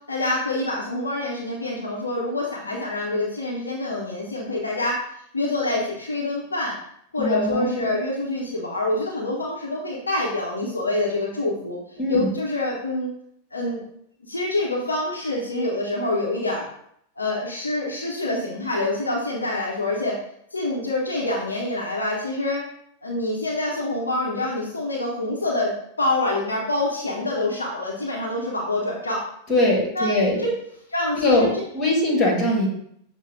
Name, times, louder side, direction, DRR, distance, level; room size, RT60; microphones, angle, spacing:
voice 1, 0.1-5.0 5.3-6.8 7.1-11.8 12.1-13.1 13.5-13.8 14.2-16.7 17.2-20.2 20.5-22.6 23.0-25.7 26.0-29.2 30.0-30.5 30.9-31.5, left 2 dB, 75° left, -3 dB, 0.8 m, -26 dB
voice 2, 7.2-7.9 12.0-12.3 29.5-30.4 31.1-32.7, left 2 dB, 30° left, -1 dB, 1.7 m, -21 dB
6.3 x 2.2 x 3.5 m, 0.70 s
figure-of-eight pair, 90°, 0 cm